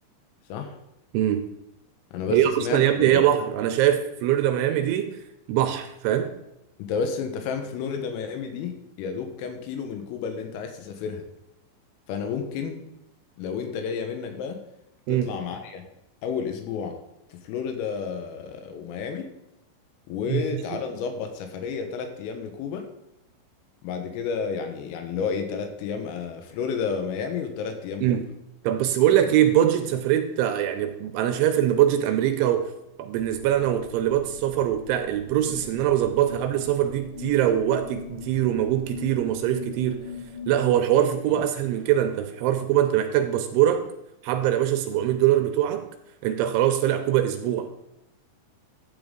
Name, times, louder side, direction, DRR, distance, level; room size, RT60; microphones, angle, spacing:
voice 1, 1.1-1.5 2.3-5.1 5.5-6.3 15.1-15.3 20.3-20.8 28.0-28.3 28.6-32.7 33.0-40.0 40.5-43.9 44.2-45.9 46.2-47.7, right 11 dB, 85° right, 7 dB, 3.0 m, -23 dB
voice 2, 2.1-3.2 6.8-11.2 12.1-12.9 13.4-14.6 15.1-15.8 16.2-17.0 17.3-19.3 20.1-22.9 23.8-28.2, left 6 dB, 85° left, 5 dB, 3.9 m, -31 dB
sound 1, 33.1-40.9, left 4 dB, 65° left, 3.8 m, -41 dB
12.5 x 9.0 x 3.9 m, 0.85 s
omnidirectional pair, 5.8 m